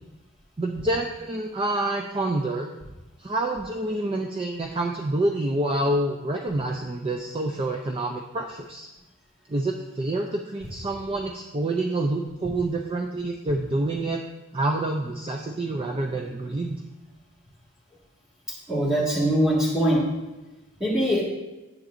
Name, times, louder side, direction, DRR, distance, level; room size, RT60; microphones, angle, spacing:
voice 1, 0.6-2.7 3.2-8.9 9.5-14.2 14.5-16.8, right 2 dB, 25° right, 2 dB, 0.4 m, -27 dB
voice 2, 18.5-20.0 20.8-21.2, equal, ahead, -6 dB, 1.8 m, -22 dB
10.5 x 7.2 x 2.6 m, 1.1 s
head